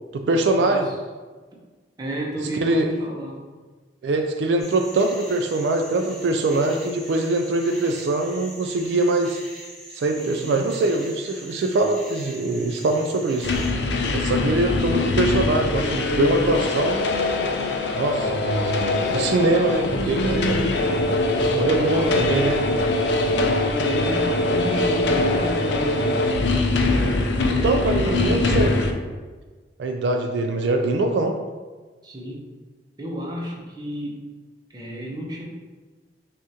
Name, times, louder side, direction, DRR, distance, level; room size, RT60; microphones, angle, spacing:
voice 1, 0.1-0.9 2.6-2.9 4.0-9.4 9.9-13.5 14.1-17.0 17.9-20.7 21.5-22.6 27.6-29.0 29.8-31.3, right 2 dB, 70° right, 4 dB, 0.3 m, -23 dB
voice 2, 2.0-3.4 10.1-10.6 18.1-18.4 18.9-19.8 21.3-22.2 23.3-26.2 26.8-28.4 32.0-32.4 33.0-34.3 34.7-35.5, right 1 dB, 20° right, -2 dB, 0.7 m, -32 dB
sound 1, 4.6-13.7, equal, ahead, 1.0 m, -42 dB
sound 2, 13.4-28.9, left 2 dB, 70° left, 0.4 m, -22 dB
6.1 x 2.4 x 2.8 m, 1.4 s
head